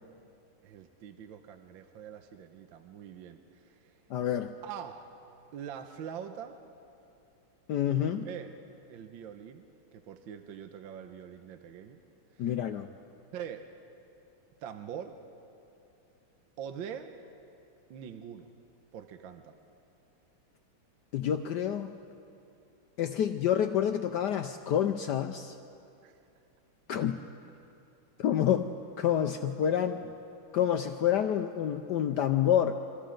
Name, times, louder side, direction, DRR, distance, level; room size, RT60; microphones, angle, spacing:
voice 1, 0.6-4.0 4.6-5.1 5.5-6.6 8.0-8.5 8.9-9.6 9.9-12.0 12.3-12.6 13.3-13.7 14.6-15.2 16.6-17.1 17.9-18.5 18.9-19.6 26.0-26.2, right 8 dB, 65° right, 7 dB, 1.5 m, -43 dB
voice 2, 4.1-4.5 7.7-8.3 12.4-12.9 21.1-21.9 23.0-25.5 26.9-27.2 28.2-30.0 30.5-32.7, left 10 dB, 75° left, 7 dB, 1.0 m, -28 dB
27.0 x 25.0 x 3.9 m, 2.7 s
omnidirectional pair, 2.4 m